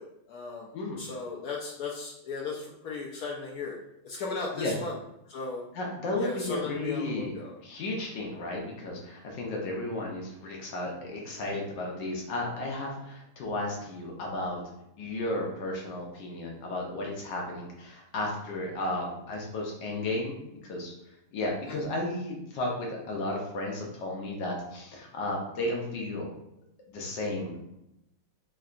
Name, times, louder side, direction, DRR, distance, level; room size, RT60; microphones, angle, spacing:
voice 1, 0.0-0.7 1.0-3.8 4.0-4.9 5.3-5.6 6.2-7.5, left 4 dB, 85° left, -2 dB, 0.8 m, -36 dB
voice 2, 5.7-7.3 7.6-14.6 15.0-20.4 20.6-26.3 26.9-27.5, left 2 dB, 70° left, -1 dB, 1.3 m, -33 dB
3.7 x 3.2 x 2.4 m, 0.84 s
omnidirectional pair, 2.2 m